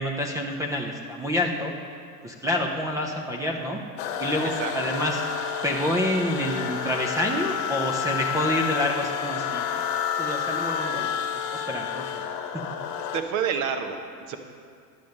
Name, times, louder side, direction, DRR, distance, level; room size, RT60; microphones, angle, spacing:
voice 1, 0.0-1.7 2.2-3.8 4.2-5.2 5.6-9.9 10.2-12.2 12.5-12.6, left 1 dB, 10° right, 1 dB, 0.4 m, -28 dB
sound 1, 4.0-13.2, left 8 dB, 65° left, 1.1 m, -30 dB
voice 2, 13.1-14.4, right 7 dB, 40° right, 7 dB, 1.0 m, -28 dB
10.5 x 6.9 x 6.5 m, 2.2 s
supercardioid pair, 130°, 46 cm